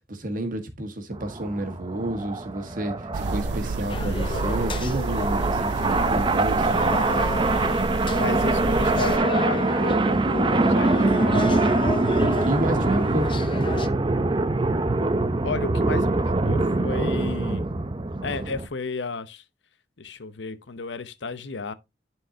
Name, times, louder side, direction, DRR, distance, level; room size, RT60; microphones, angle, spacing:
voice 1, 0.1-6.8 12.2-13.3, right 1 dB, 50° right, 1.6 m, -30 dB
sound 1, 1.1-18.7, right 2 dB, 30° right, 0.6 m, -24 dB
sound 2, 3.1-9.2, right 3 dB, 70° right, 0.5 m, -30 dB
sound 3, 3.9-13.9, left 2 dB, 30° left, 0.7 m, -34 dB
voice 2, 8.2-12.0 15.4-17.6 18.2-19.4 20.0-21.7, left 4 dB, 90° left, 0.8 m, -33 dB
11.0 x 4.6 x 2.8 m
head